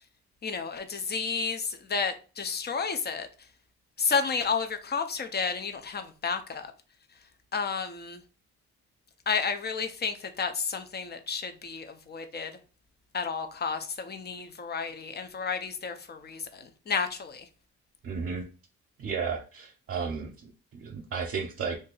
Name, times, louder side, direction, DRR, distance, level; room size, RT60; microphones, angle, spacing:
voice 1, 0.4-3.3 4.0-6.7 7.5-8.2 9.3-12.5 13.1-17.4, left 5 dB, 35° left, 0.6 m, -31 dB
voice 2, 18.0-18.4 19.0-21.8, right 5 dB, 45° right, 0.7 m, -33 dB
2.7 x 2.5 x 3.9 m
cardioid pair, 90°, 30 cm